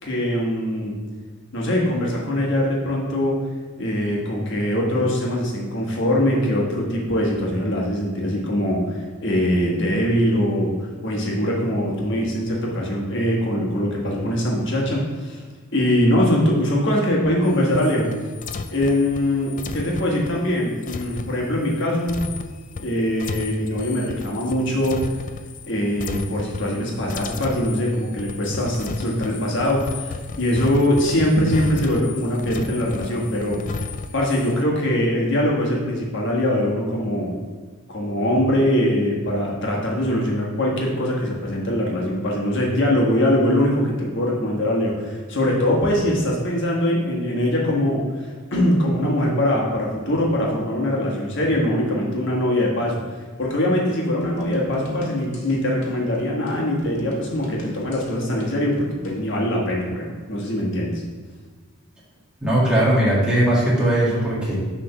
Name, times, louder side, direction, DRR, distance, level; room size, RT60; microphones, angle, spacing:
voice 1, 0.0-0.9 1.5-3.4 3.8-15.4 15.7-18.1 18.7-22.2 22.8-25.0 25.7-33.8 34.1-37.3 37.9-53.0 53.4-61.0, left 1 dB, 55° left, -2 dB, 1.5 m, -22 dB
sound 1, 17.4-25.7 26.0-26.8 27.1-34.6, left 4 dB, 35° left, 0.3 m, -33 dB
sound 2, 54.2-59.3, left 1 dB, 85° left, 1.4 m, -39 dB
voice 2, 62.4-64.6, right 1 dB, 5° right, -8 dB, 1.8 m, -19 dB
6.7 x 3.7 x 5.7 m, 1.4 s
head